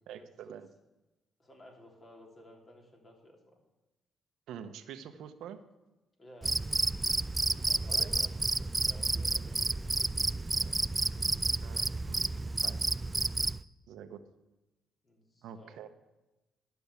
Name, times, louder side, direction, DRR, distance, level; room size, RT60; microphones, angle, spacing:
voice 1, 0.1-0.7 4.5-5.6 8.0-8.1 11.6-12.2 12.6-12.9 13.9-14.2 15.4-15.9, right 8 dB, 80° right, 9 dB, 0.9 m, -46 dB
voice 2, 1.4-3.6 6.2-6.6 7.5-10.8 15.0-15.8, left 1 dB, 35° left, 1 dB, 3.3 m, -56 dB
Cricket, 6.4-13.6, right 3 dB, 20° right, 0.3 m, -30 dB
12.0 x 6.9 x 8.2 m, 1.0 s
cardioid pair, 90°, 0 cm